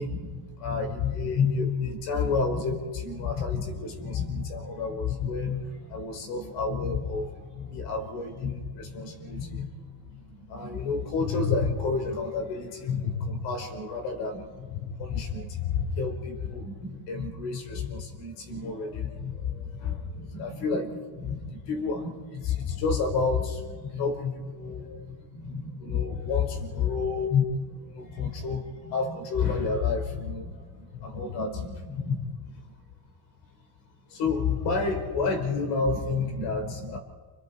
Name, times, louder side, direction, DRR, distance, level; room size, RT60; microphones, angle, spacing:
voice 1, 0.0-32.6 34.1-37.0, left 5 dB, 80° left, 4 dB, 5.0 m, -30 dB
30.0 x 29.0 x 4.5 m, 1.5 s
cardioid pair, 105°, 42 cm